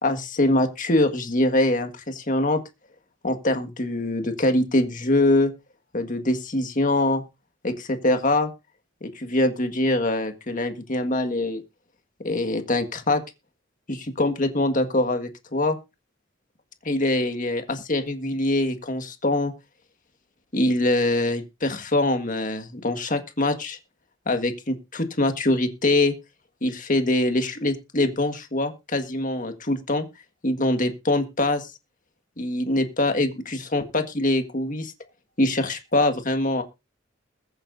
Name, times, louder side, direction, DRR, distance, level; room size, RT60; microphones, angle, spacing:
voice 1, 0.0-2.6 3.2-5.5 5.9-7.2 7.6-8.5 9.0-11.6 12.2-13.2 13.9-15.8 16.9-19.5 20.5-23.8 24.3-26.1 26.6-30.1 30.4-31.7 32.4-34.9 35.4-36.6, left 2 dB, 40° left, 7 dB, 1.7 m, -23 dB
22.0 x 8.8 x 2.7 m, 0.27 s
head